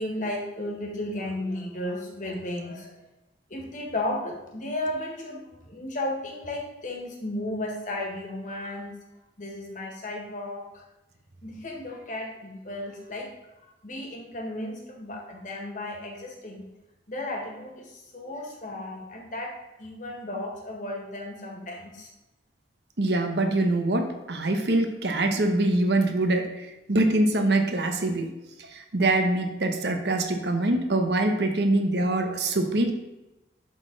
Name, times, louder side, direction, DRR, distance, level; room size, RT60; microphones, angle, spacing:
voice 1, 0.0-3.0 3.5-8.9 9.4-10.8 11.4-13.3 13.8-16.6 17.1-19.5 19.8-22.1, left 1 dB, 45° left, 0 dB, 1.6 m, -34 dB
voice 2, 23.0-28.3 28.7-32.9, right 2 dB, 65° right, 6 dB, 0.9 m, -24 dB
11.5 x 3.9 x 3.9 m, 0.99 s
head